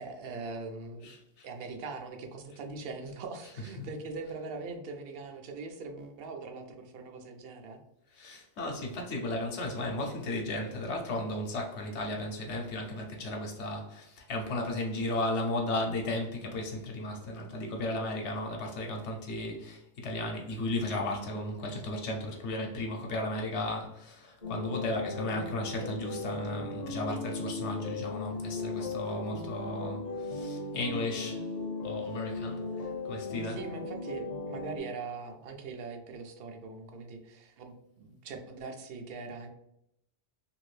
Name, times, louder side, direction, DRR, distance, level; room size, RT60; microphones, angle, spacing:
voice 1, 0.0-1.1 1.4-7.8 33.4-39.5, right 4 dB, 65° right, 4 dB, 0.7 m, -41 dB
voice 2, 1.0-1.5 3.8-3.9 8.1-31.5 31.8-33.6, left 1 dB, 75° left, 1 dB, 0.9 m, -35 dB
sound 1, 24.4-34.8, left 3 dB, 45° left, 0.6 m, -37 dB
2.7 x 2.5 x 3.1 m, 0.79 s
omnidirectional pair, 1.2 m